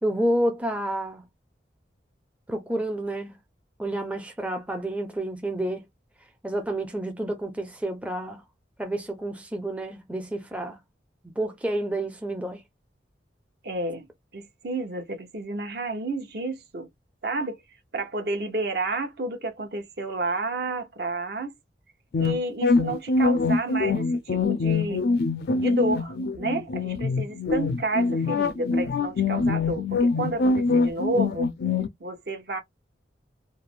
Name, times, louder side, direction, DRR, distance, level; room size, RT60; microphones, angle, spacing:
voice 1, 0.0-1.2 2.5-3.4 3.8-5.8 6.4-8.4 8.8-10.8 11.4-12.6, right 1 dB, 5° right, 0.4 m, -29 dB
voice 2, 13.6-14.1 14.3-16.9 17.2-17.6 17.9-21.5 22.2-25.0 25.6-31.5 32.0-32.6, right 2 dB, 60° right, 0.8 m, -30 dB
sound 1, 22.1-31.9, left 3 dB, 55° left, 0.4 m, -24 dB
3.2 x 2.1 x 2.4 m
head